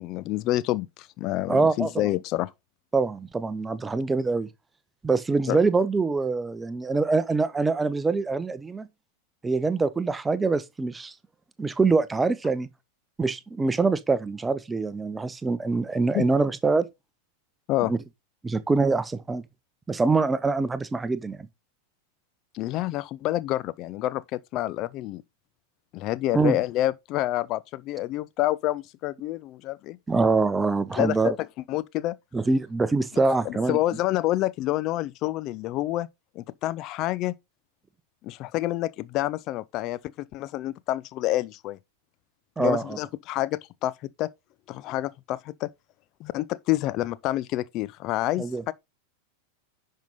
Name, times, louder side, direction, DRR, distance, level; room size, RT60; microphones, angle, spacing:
voice 1, 0.0-2.5 5.5-5.6 16.1-16.3 17.7-17.9 22.5-25.2 25.9-30.0 31.0-31.3 31.7-32.2 33.4-36.1 36.4-37.3 38.2-41.8 42.6-44.3 44.7-45.7 46.2-48.7, left 15 dB, 40° left, 0.4 m, -28 dB
voice 2, 1.5-1.9 2.9-4.5 5.0-8.9 9.4-11.1 11.6-12.7 13.2-16.9 17.9-18.0 18.4-19.4 19.9-21.4 26.3-26.6 30.1-31.4 32.3-33.8 42.6-43.0 48.4-48.7, right 3 dB, 10° right, 0.8 m, -24 dB
10.5 x 5.6 x 3.9 m
figure-of-eight pair, 90°, 0 cm